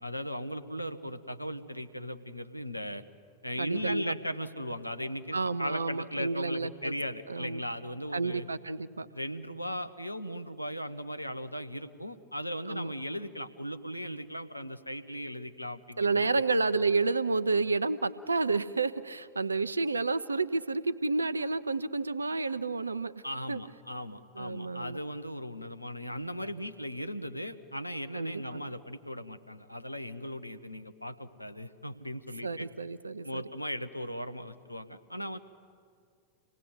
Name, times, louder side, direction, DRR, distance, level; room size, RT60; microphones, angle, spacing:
voice 1, 0.0-3.0 3.4-8.5 9.1-16.3 23.2-32.7 33.2-35.4, equal, 90° left, 9 dB, 0.9 m, -38 dB
voice 2, 3.6-4.1 5.3-6.9 7.3-7.6 8.1-9.1 12.7-12.9 16.0-23.1 23.5-23.6 24.4-25.0 28.1-28.6 32.4-33.4, right 3 dB, 80° right, 15 dB, 0.6 m, -30 dB
26.0 x 18.0 x 8.3 m, 2.3 s
figure-of-eight pair, 90°, 0 cm